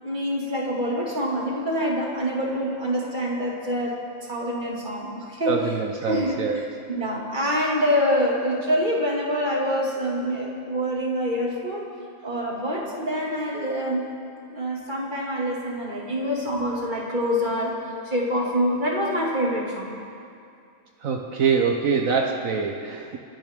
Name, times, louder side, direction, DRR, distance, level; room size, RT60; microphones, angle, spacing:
voice 1, 0.0-5.7 6.1-11.9 12.2-14.1 14.5-17.8 18.0-19.9, equal, 35° right, -4 dB, 2.5 m, -26 dB
voice 2, 5.5-6.6 21.0-23.2, right 5 dB, 65° right, 2 dB, 1.3 m, -24 dB
29.5 x 10.5 x 3.7 m, 2.4 s
omnidirectional pair, 1.5 m